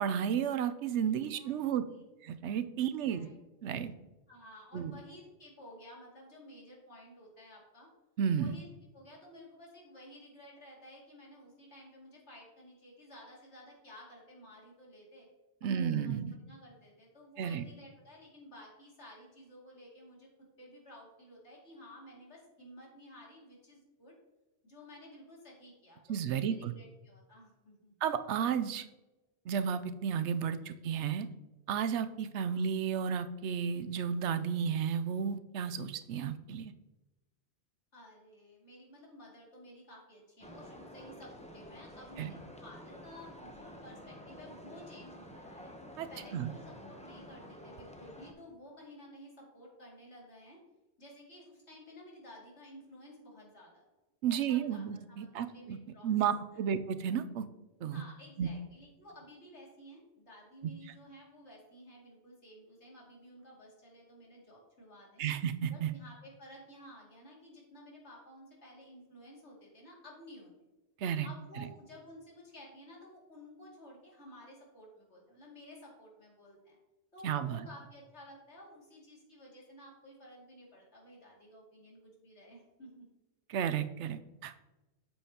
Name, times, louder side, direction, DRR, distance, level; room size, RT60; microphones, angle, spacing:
voice 1, 0.0-1.8 2.2-3.3 3.6-3.9 4.7-4.9 8.2-8.6 15.6-16.3 17.4-17.6 26.1-26.7 28.0-28.9 29.5-31.3 31.7-36.7 42.2-42.3 46.0-46.1 46.3-46.5 54.2-55.8 56.0-57.5 57.8-58.0 58.4-58.5 65.2-65.9 71.0-71.3 71.6-71.7 77.2-77.7 83.5-84.7, right 8 dB, 80° right, 11 dB, 0.9 m, -32 dB
voice 2, 1.1-2.0 2.8-3.3 3.7-4.0 4.3-7.9 8.3-8.7 8.9-15.3 15.7-20.3 20.6-24.2 24.6-27.9 32.4-32.7 37.9-45.8 46.1-50.6 51.0-53.8 54.3-56.1 56.5-56.6 57.9-65.3 65.7-70.5 71.2-76.8 77.1-83.1, equal, 70° left, -4 dB, 2.7 m, -54 dB
sound 1, 40.4-48.3, left 1 dB, 5° left, 0.7 m, -50 dB
8.6 x 7.2 x 2.8 m, 1.0 s
omnidirectional pair, 1.2 m